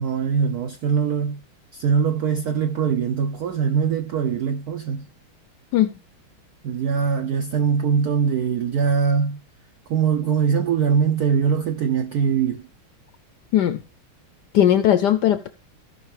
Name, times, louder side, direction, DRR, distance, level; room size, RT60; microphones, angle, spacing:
voice 1, 0.0-1.4 1.7-5.1 6.6-9.4 9.9-12.7, right 6 dB, 80° right, 0.8 m, -22 dB
voice 2, 14.5-15.5, left 11 dB, 75° left, 0.9 m, -18 dB
16.5 x 5.6 x 3.3 m
omnidirectional pair, 2.3 m